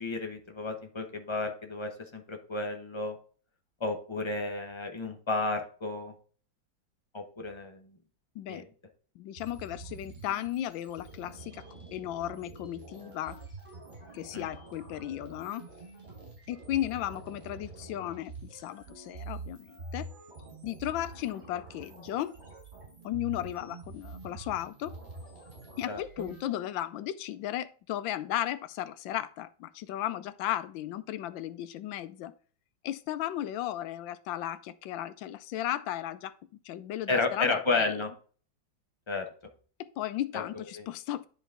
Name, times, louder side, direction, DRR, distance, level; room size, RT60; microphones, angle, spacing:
voice 1, 0.0-3.2 3.8-6.1 7.1-7.8 8.5-8.6 14.3-14.5 25.9-26.3 37.1-38.1 39.1-39.2 40.3-40.4 40.8-40.9, left 3 dB, 40° left, 4 dB, 0.4 m, -32 dB
voice 2, 9.2-11.6 11.9-13.4 14.1-15.6 16.5-20.1 20.6-22.3 23.0-24.9 25.8-32.3 32.8-36.3 36.6-37.9 39.8-41.3, left 12 dB, 80° left, 14 dB, 1.3 m, -35 dB
sound 1, 9.4-26.4, right 2 dB, 20° right, 4.5 m, -46 dB
10.0 x 4.0 x 3.7 m, 0.41 s
omnidirectional pair, 2.1 m